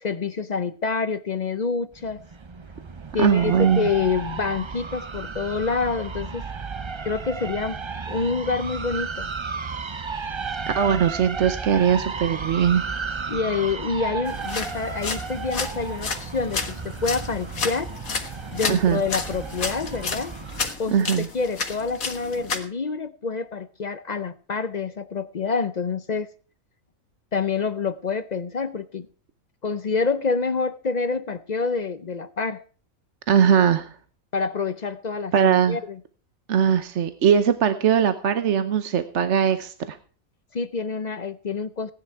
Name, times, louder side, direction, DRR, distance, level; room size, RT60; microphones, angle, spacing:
voice 1, 0.0-2.2 3.1-6.4 7.0-7.8 8.1-9.3 13.3-17.9 18.5-20.4 20.8-26.3 27.3-29.1 29.6-32.6 34.3-36.0 40.5-41.9, left 4 dB, 45° left, 14 dB, 0.6 m, -27 dB
sound 1, 1.9-20.7, right 5 dB, 35° right, 0.5 m, -33 dB
voice 2, 3.2-3.9 10.8-12.8 18.7-19.0 20.9-21.3 33.3-33.9 35.3-35.8 36.5-40.0, right 8 dB, 60° right, 11 dB, 1.1 m, -20 dB
sound 2, 14.3-22.6, left 5 dB, 80° left, 2.2 m, -32 dB
17.5 x 10.5 x 4.6 m, 0.42 s
omnidirectional pair, 1.4 m